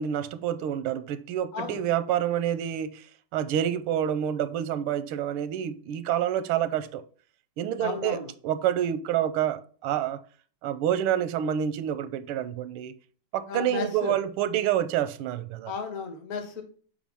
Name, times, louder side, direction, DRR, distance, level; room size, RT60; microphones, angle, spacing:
voice 1, 0.0-3.0 3.3-7.0 7.6-10.2 10.6-12.9 13.3-15.7, right 10 dB, 85° right, 1.5 m, -28 dB
voice 2, 1.5-1.8 7.8-8.3 13.5-14.1 15.7-16.6, left 5 dB, 45° left, 1.5 m, -34 dB
7.3 x 5.0 x 3.5 m
omnidirectional pair, 2.3 m